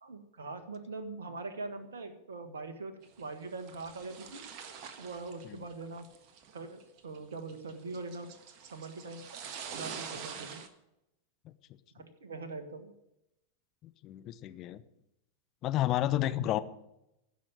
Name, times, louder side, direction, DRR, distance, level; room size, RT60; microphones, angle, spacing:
voice 1, 0.0-4.5 5.0-6.1 6.5-8.3 8.7-9.2 9.7-10.6 12.0-12.9 16.1-16.5, right 3 dB, 65° right, 8 dB, 1.6 m, -42 dB
sound 1, 3.0-10.7, right 7 dB, 40° right, 1.5 m, -45 dB
voice 2, 13.8-14.8 15.6-16.6, left 14 dB, 35° left, 11 dB, 0.9 m, -31 dB
16.0 x 6.2 x 9.1 m, 0.85 s
figure-of-eight pair, 90°, 0 cm